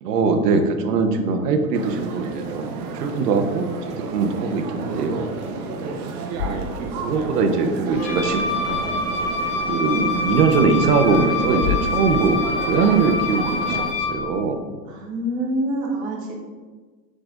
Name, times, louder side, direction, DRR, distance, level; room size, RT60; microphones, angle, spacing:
voice 1, 0.0-3.7 4.1-5.3 6.4-6.7 7.0-8.9 9.7-13.8 14.1-14.6, right 4 dB, 70° right, 6 dB, 1.1 m, -21 dB
sound 1, 1.7-13.9, right 4 dB, 35° right, 0.8 m, -32 dB
voice 2, 5.6-6.1 14.9-16.3, right 1 dB, 10° right, -2 dB, 0.3 m, -27 dB
sound 2, 6.4-7.4 7.7-7.8 11.0-13.0, left 7 dB, 85° left, 0.8 m, -31 dB
Wind instrument woodwind instrument, 7.9-14.2, left 3 dB, 25° left, 1.7 m, -26 dB
7.7 x 6.1 x 2.6 m, 1.4 s
hypercardioid pair, 135°, 48 cm